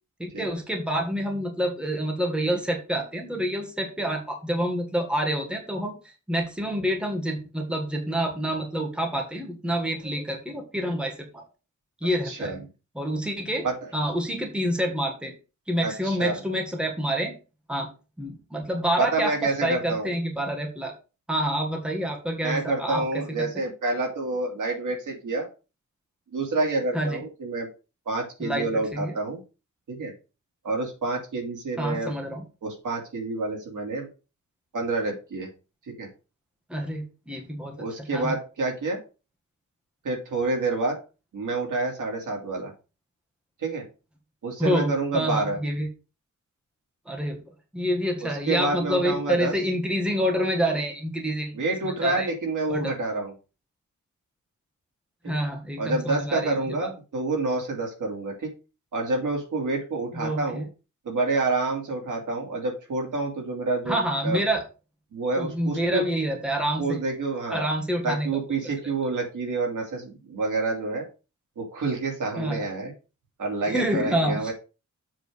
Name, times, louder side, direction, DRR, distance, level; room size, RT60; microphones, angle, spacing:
voice 1, 0.2-11.4 12.0-12.6 12.9-13.6 13.9-15.3 15.7-17.3 17.7-17.9 18.2-20.9 21.3-23.0 23.4-23.6 26.9-27.2 28.4-29.2 31.8-32.4 36.7-37.8 38.1-38.3 44.6-45.9 47.1-47.4 47.7-51.6 51.8-52.3 52.7-52.9 55.2-56.9 60.1-60.6 63.9-64.6 65.4-67.0 67.5-68.3 72.4-72.6 73.7-74.5, equal, 5° right, 1 dB, 1.6 m, -27 dB
voice 2, 12.2-12.6 13.6-13.7 15.8-16.4 19.0-20.1 22.4-25.5 26.3-27.7 28.1-29.4 29.9-30.1 30.6-32.1 32.6-34.1 34.7-35.5 36.0-36.1 37.8-39.0 40.0-41.0 41.3-42.7 43.6-43.8 44.4-45.6 48.2-49.5 51.5-53.3 55.8-58.5 58.9-60.7 61.0-64.4 65.1-66.0 66.8-67.6 68.0-71.0 71.6-72.9 73.4-74.5, right 3 dB, 85° right, 0 dB, 2.9 m, -28 dB
7.5 x 3.9 x 6.4 m, 0.32 s
wide cardioid pair, 180°, 30 cm